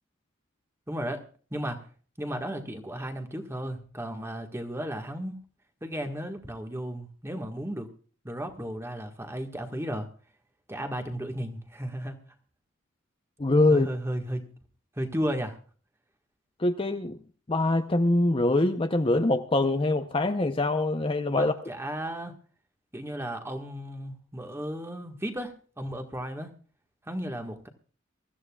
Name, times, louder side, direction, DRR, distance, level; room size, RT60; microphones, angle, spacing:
voice 1, 0.9-1.2 1.5-1.8 2.2-5.3 5.8-7.9 8.2-10.1 10.7-12.2 13.7-14.5 14.9-15.6 21.4-22.3 22.9-26.5 27.1-27.7, equal, 15° right, 1.6 m, -34 dB
voice 2, 13.4-13.9 16.6-17.2 17.5-21.5, left 2 dB, 25° left, 0.7 m, -24 dB
23.5 x 13.5 x 2.4 m
head